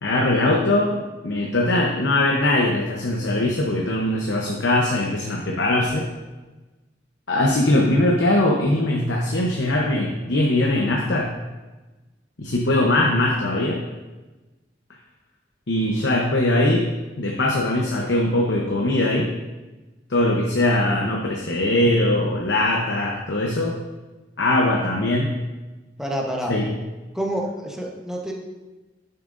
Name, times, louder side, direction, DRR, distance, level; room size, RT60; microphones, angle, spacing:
voice 1, 0.0-6.1 7.3-11.3 12.4-13.8 15.7-16.9 17.2-19.3 20.1-23.8 24.4-25.3 26.5-26.7, left 1 dB, 80° left, -1 dB, 0.9 m, -21 dB
voice 2, 26.0-26.5 27.1-28.3, right 1 dB, 5° right, -1 dB, 1.0 m, -27 dB
10.5 x 6.6 x 2.6 m, 1.2 s
head